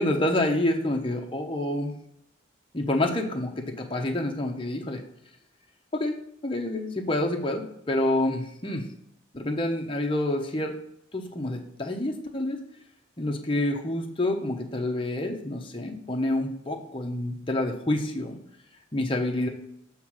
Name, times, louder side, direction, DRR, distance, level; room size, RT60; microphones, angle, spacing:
voice 1, 0.0-1.9 2.7-5.0 5.9-6.2 6.4-8.9 9.3-10.7 11.1-12.6 13.2-18.4 18.9-19.5, left 1 dB, 25° left, 2 dB, 0.9 m, -28 dB
7.8 x 3.7 x 6.3 m, 0.75 s
head